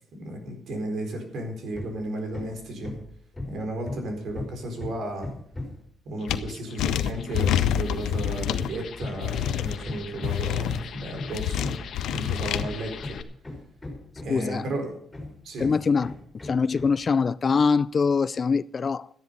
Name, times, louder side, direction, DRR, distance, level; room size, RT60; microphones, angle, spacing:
voice 1, 0.1-2.9 3.5-5.3 6.0-11.7 12.1-13.2 14.2-14.9 15.4-15.7, right 1 dB, 65° right, 4.3 m, -34 dB
Hammer, 1.7-2.0 2.3-5.9 7.6-14.6 15.1-17.0, left 2 dB, 10° left, 4.3 m, -38 dB
sound 1, 6.1-13.2, left 7 dB, 60° left, 1.2 m, -43 dB
sound 2, 6.3-6.4 6.8-8.7 9.2-9.8 10.2-10.8 11.3-12.6, left 11 dB, 85° left, 0.8 m, -26 dB
voice 2, 14.3-14.7 15.6-16.1 16.4-19.1, left 5 dB, 40° left, 0.4 m, -23 dB
13.5 x 10.5 x 5.5 m
cardioid pair, 90°, 0 cm